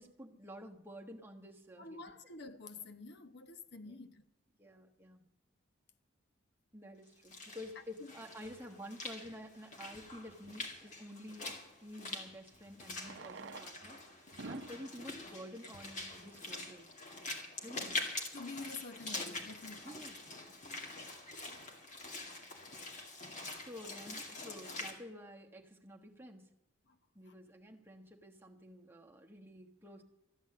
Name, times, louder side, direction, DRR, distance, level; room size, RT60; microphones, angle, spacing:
voice 1, 0.0-2.0 3.8-4.0 4.6-5.2 6.7-11.5 11.8-16.9 17.6-18.0 19.8-20.5 23.6-26.5 27.1-30.0, equal, 10° right, 1.2 m, -50 dB
voice 2, 1.8-4.2 8.0-8.1 17.6-17.9 18.3-20.0 26.9-27.0 27.3-27.4, left 3 dB, 55° left, 0.9 m, -48 dB
Walk footsteps / Splash splatter, 7.1-24.9, left 2 dB, 40° left, 2.3 m, -45 dB
Fireworks, 9.4-9.5 11.7-11.8 12.9-16.6 17.4-17.5 17.7-17.8 18.0-18.1 18.6-18.9, right 3 dB, 65° right, 0.7 m, -51 dB
14.0 x 10.5 x 7.5 m
head